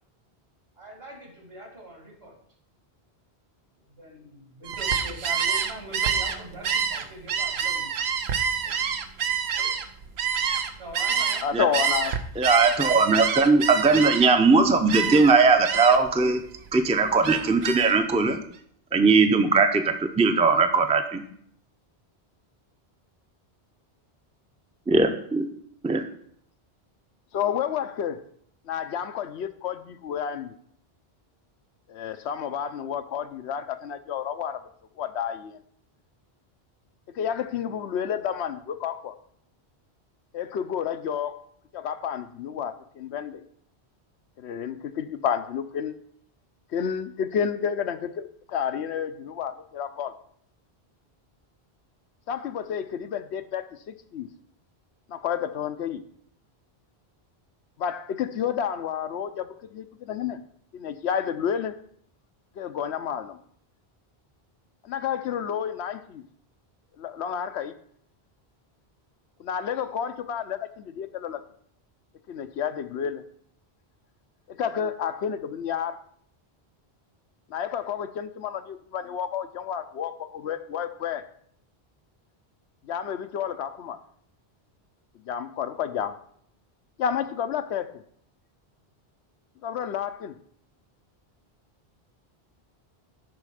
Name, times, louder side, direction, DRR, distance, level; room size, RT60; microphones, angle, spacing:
voice 1, 0.8-2.4 3.9-7.9 8.6-8.7 9.5-9.7 10.8-11.4, right 1 dB, 65° right, 0 dB, 2.8 m, -42 dB
Gull seagull, 4.6-11.4 11.7-14.4 14.9-15.3 15.6-16.1 16.5-18.0, right 7 dB, 80° right, 1.0 m, -27 dB
voice 2, 11.4-12.1 27.3-28.2 28.7-30.6 31.9-34.6 35.0-35.6 37.1-39.1 40.3-41.4 41.7-43.4 44.4-45.9 46.7-50.1 52.3-54.3 55.1-56.0 57.8-60.4 60.7-61.7 62.6-63.4 64.8-66.2 67.0-67.7 69.4-71.4 72.3-73.2 74.5-76.0 77.5-81.2 82.8-84.0 85.3-86.1 87.0-88.0 89.6-90.3, left 8 dB, 90° left, 10 dB, 0.9 m, -30 dB
voice 3, 12.4-16.4 16.7-18.4 18.9-21.2 24.9-25.5 25.8-26.0, right 4 dB, 10° right, 6 dB, 0.5 m, -20 dB
11.0 x 4.2 x 4.9 m, 0.64 s
omnidirectional pair, 1.1 m